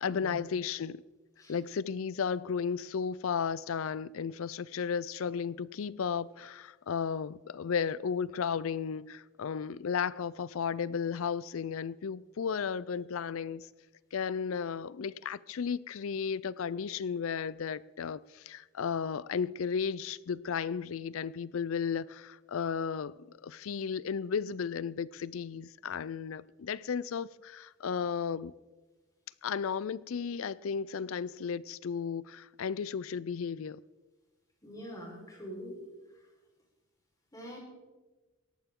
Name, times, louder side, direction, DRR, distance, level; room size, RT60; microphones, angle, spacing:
voice 1, 0.0-1.0 1.5-13.7 14.1-28.5 29.4-33.8, left 6 dB, 70° left, 0.4 m, -34 dB
voice 2, 34.6-35.7 37.3-37.6, equal, 15° left, 4.4 m, -44 dB
18.0 x 13.5 x 3.7 m
head